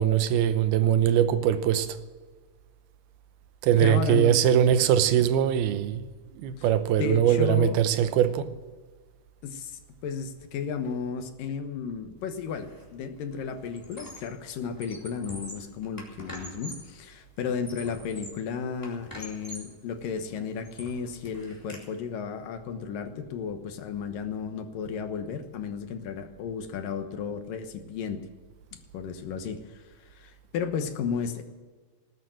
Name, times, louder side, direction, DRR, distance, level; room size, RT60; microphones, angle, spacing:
voice 1, 0.0-2.0 3.6-6.1 6.3-8.5, right 10 dB, 85° right, 2.7 m, -22 dB
voice 2, 3.8-4.3 6.6-6.7 7.0-7.8 9.4-28.2 28.7-31.4, left 6 dB, 70° left, 2.6 m, -33 dB
Squeak, 12.5-12.8 13.2-14.4 14.7-16.9 17.4-18.5 18.8-19.8 20.3-21.8, equal, 5° left, 3.3 m, -44 dB
19.5 x 9.2 x 7.7 m
omnidirectional pair, 4.4 m